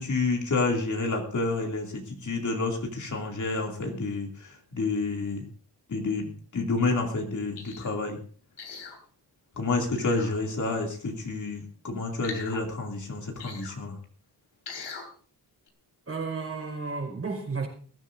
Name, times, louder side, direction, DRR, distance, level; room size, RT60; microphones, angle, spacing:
voice 1, 0.0-5.5 5.9-8.2 9.5-14.0, left 3 dB, 45° left, 1 dB, 2.7 m, -29 dB
sound 1, 7.6-7.9 8.6-9.0 9.9-10.3 12.2-12.6 13.4-13.7 14.7-15.1 15.7-15.8, left 5 dB, 85° left, 3.4 m, -40 dB
voice 2, 16.1-17.7, right 4 dB, 35° right, 2 dB, 5.3 m, -32 dB
21.0 x 15.0 x 2.6 m, 0.43 s
wide cardioid pair, 145°, 40 cm